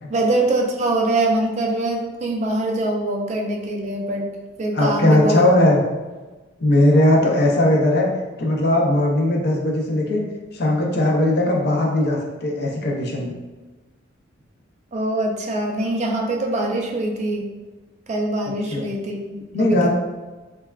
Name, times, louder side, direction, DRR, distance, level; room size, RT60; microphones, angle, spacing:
voice 1, 0.1-5.5 14.9-17.5 18.1-19.9, right 2 dB, 35° right, 1 dB, 0.3 m, -23 dB
voice 2, 4.7-5.8 6.6-8.1 8.4-10.2 10.5-13.3 18.7-18.8 19.5-19.9, left 1 dB, 55° left, 0 dB, 0.5 m, -18 dB
3.3 x 2.3 x 2.2 m, 1.2 s
head